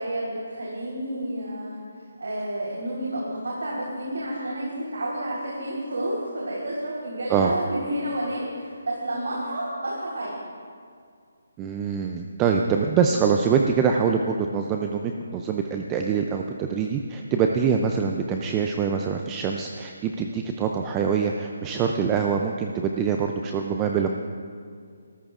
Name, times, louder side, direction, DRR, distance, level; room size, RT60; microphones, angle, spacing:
voice 1, 0.0-1.8 2.2-10.3, right 1 dB, 85° right, -5 dB, 3.8 m, -30 dB
voice 2, 11.6-24.2, right 6 dB, 10° right, 3 dB, 0.4 m, -24 dB
24.5 x 14.0 x 2.5 m, 2.2 s
hypercardioid pair, 175°, 0 cm